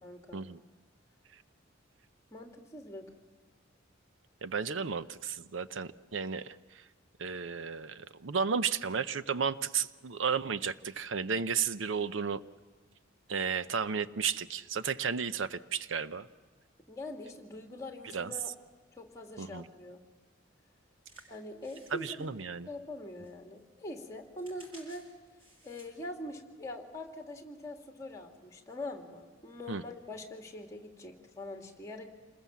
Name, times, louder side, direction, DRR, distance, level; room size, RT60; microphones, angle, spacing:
voice 1, 0.0-0.5 2.3-3.0 16.9-18.5 18.9-20.0 21.3-22.3 22.7-25.1 25.6-32.1, left 1 dB, 15° left, 2 dB, 2.7 m, -43 dB
voice 2, 4.4-6.8 7.2-12.4 13.3-16.3 18.1-18.3 19.4-19.6 21.9-22.7 29.7-29.8, right 6 dB, 70° right, 14 dB, 0.7 m, -33 dB
sound 1, 21.0-23.0 23.2-26.1 26.6-26.7, equal, 30° right, 6.8 m, -58 dB
27.5 x 21.0 x 7.3 m, 1.4 s
head